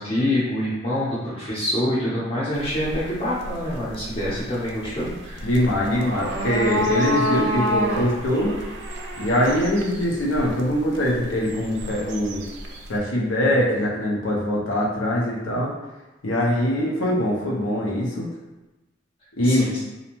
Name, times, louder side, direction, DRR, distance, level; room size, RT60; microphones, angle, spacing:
voice 1, 0.0-5.5 19.4-19.8, left 1 dB, 30° left, -11 dB, 0.6 m, -26 dB
sound 1, 2.5-13.0, right 1 dB, 65° right, 0.4 m, -30 dB
voice 2, 5.4-8.5 9.2-12.4 12.9-15.7 16.2-18.3 19.4-19.6, left 1 dB, 85° left, -3 dB, 0.6 m, -22 dB
2.6 x 2.1 x 2.9 m, 1.1 s
head